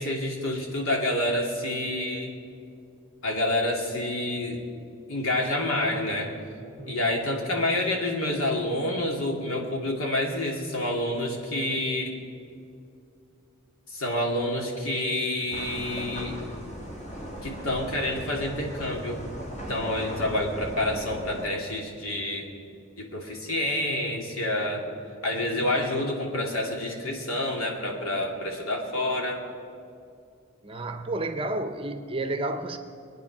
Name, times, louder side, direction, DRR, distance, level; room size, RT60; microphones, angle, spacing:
voice 1, 0.0-2.3 3.2-4.6 5.1-6.3 6.9-12.2 13.9-16.4 17.4-19.2 19.7-22.5 23.0-24.9 25.2-29.4, left 1 dB, 70° left, 2.6 m, -28 dB
voice 2, 6.8-7.2 30.6-32.8, right 2 dB, 25° right, 0.7 m, -31 dB
sound 1, 15.5-21.5, equal, 35° left, 1.9 m, -37 dB
23.5 x 9.5 x 6.1 m
head